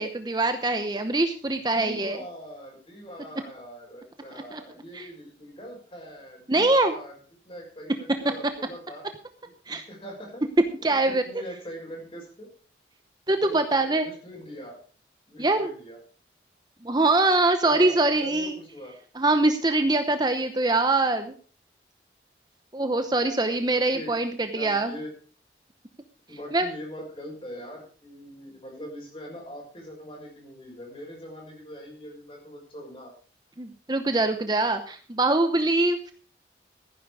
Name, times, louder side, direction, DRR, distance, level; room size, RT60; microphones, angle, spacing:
voice 1, 0.0-2.2 4.5-4.6 4.9-5.1 6.5-6.9 9.7-9.8 10.8-11.2 13.3-14.1 15.4-15.7 16.8-18.6 19.1-21.3 22.7-24.9 26.5-26.7 33.6-36.1, right 2 dB, 20° right, 8 dB, 0.8 m, -23 dB
voice 2, 1.7-7.1 7.4-9.0 9.7-10.4 10.8-12.5 13.3-14.8 15.3-16.0 17.6-19.0 22.7-23.0 23.7-24.2 24.5-25.1 26.3-33.1, equal, 30° left, 0 dB, 6.2 m, -42 dB
15.0 x 10.5 x 4.8 m, 0.41 s
head